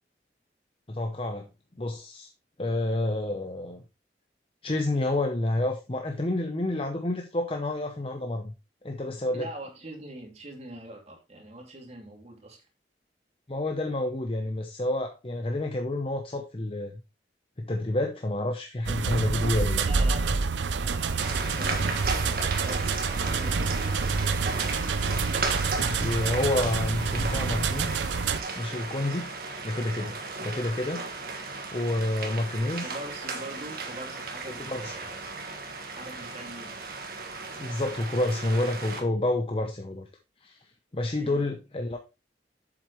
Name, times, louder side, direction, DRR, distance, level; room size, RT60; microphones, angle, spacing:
voice 1, 0.9-1.5 1.8-2.3 2.6-3.8 4.6-8.5 8.8-9.5 13.5-17.0 17.6-19.8 25.8-27.9 28.6-29.3 29.6-31.1 31.7-32.8 34.6-34.9 37.6-40.1 40.4-40.6 40.9-42.0, left 1 dB, 30° left, 0.8 m, -29 dB
voice 2, 9.3-12.6 19.8-23.9 32.8-35.3 35.9-36.8 41.2-41.4, right 1 dB, 35° right, 2.6 m, -43 dB
sound 1, 18.9-28.4, right 4 dB, 85° right, 0.6 m, -28 dB
sound 2, 21.2-39.0, right 3 dB, 55° right, 1.7 m, -35 dB
7.7 x 7.6 x 3.1 m
head